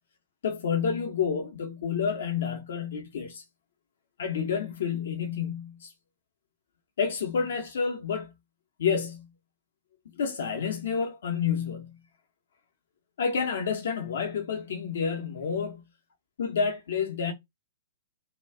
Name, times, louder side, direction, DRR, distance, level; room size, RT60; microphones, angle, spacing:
voice 1, 0.4-3.4 4.2-5.9 7.0-8.3 8.8-9.3 10.1-12.0 13.2-15.8 16.4-17.3, left 6 dB, 55° left, 0.6 m, -29 dB
2.2 x 2.1 x 3.4 m
figure-of-eight pair, 110°, 0 cm